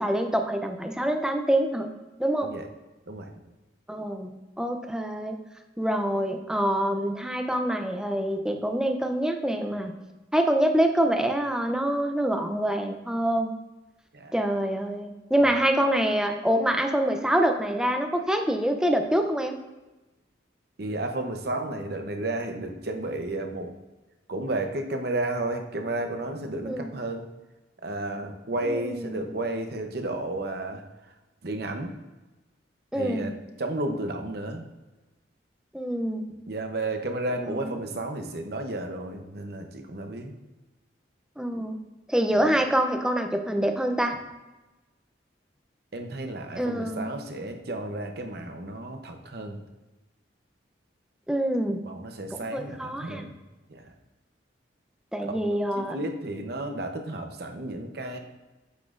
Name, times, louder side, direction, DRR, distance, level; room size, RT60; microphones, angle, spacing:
voice 1, 0.0-1.9 2.2-2.5 3.9-4.3 4.6-5.4 5.8-9.9 10.3-13.5 14.3-19.5 26.6-26.9 28.6-29.3 32.9-33.3 35.7-36.2 37.4-37.7 41.4-41.8 42.1-44.1 46.6-47.1 51.3-51.8 52.5-53.2 55.1-56.0, right 1 dB, 5° right, 5 dB, 0.5 m, -25 dB
voice 2, 20.8-23.8 24.3-27.3 27.8-31.1 31.4-31.9 32.9-33.3 33.6-34.6 36.5-40.3 45.9-49.6 51.8-53.4 53.7-53.9 55.3-58.2, right 2 dB, 60° right, 5 dB, 0.8 m, -32 dB
8.5 x 5.9 x 2.5 m, 1.1 s
head